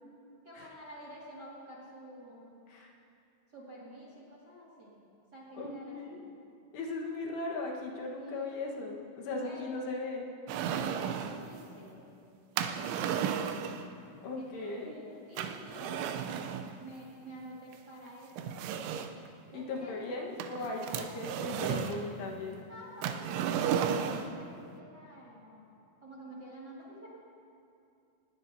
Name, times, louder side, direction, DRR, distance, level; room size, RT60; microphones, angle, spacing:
voice 1, 0.4-2.6 3.5-5.1 5.3-6.2 8.2-8.6 9.4-9.7 10.5-12.1 12.6-13.5 14.3-16.5 16.8-18.8 19.5-20.1 20.5-21.2 21.6-22.0 22.5-25.6 26.0-27.2, right 1 dB, 60° right, -6 dB, 1.0 m, -50 dB
voice 2, 5.6-6.2 6.7-10.3 14.2-14.9 19.5-22.6, left 2 dB, 70° left, -1 dB, 3.2 m, -38 dB
sound 1, 10.5-11.4 12.6-13.9 15.4-16.7 17.7-17.8 18.4-19.3 20.4-22.0 23.0-24.4, right 8 dB, 80° right, 2.9 m, -33 dB
19.5 x 17.5 x 2.7 m, 2.6 s
omnidirectional pair, 5.6 m